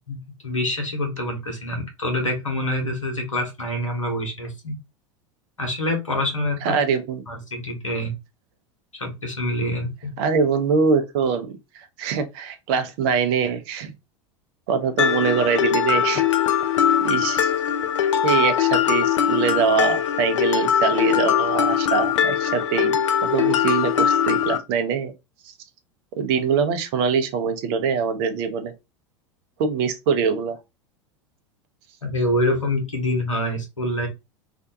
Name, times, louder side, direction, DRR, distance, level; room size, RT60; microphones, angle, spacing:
voice 1, 0.0-4.7 5.6-6.8 7.3-8.1 8.9-10.1 32.0-34.1, left 1 dB, 85° left, 0.9 m, -26 dB
voice 2, 6.6-7.2 10.2-13.9 14.7-16.2 17.0-17.5 18.2-25.1 26.2-28.7 29.6-30.6, right 6 dB, 50° right, 0.6 m, -23 dB
Mallet percussion, 15.0-24.6, left 9 dB, 70° left, 0.4 m, -21 dB
2.5 x 2.2 x 2.6 m
figure-of-eight pair, 85°, 16 cm